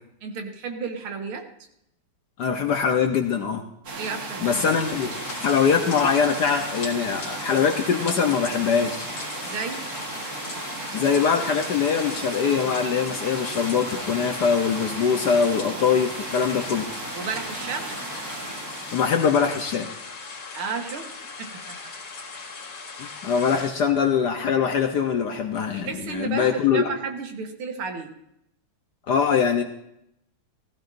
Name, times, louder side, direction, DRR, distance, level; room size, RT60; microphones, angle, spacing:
voice 1, 0.2-1.5 4.0-4.6 9.4-9.8 17.1-17.9 20.5-21.1 21.4-21.8 25.7-28.1, right 5 dB, 75° right, 5 dB, 2.1 m, -32 dB
voice 2, 2.4-3.6 4.4-9.1 10.9-16.9 18.9-19.9 23.0-26.8 29.1-29.6, left 6 dB, 65° left, 6 dB, 1.1 m, -23 dB
sound 1, 3.8-19.6, right 3 dB, 45° right, 1.8 m, -35 dB
sound 2, 4.5-23.7, left 4 dB, 80° left, 3.0 m, -38 dB
15.5 x 15.0 x 2.6 m, 0.77 s
omnidirectional pair, 2.4 m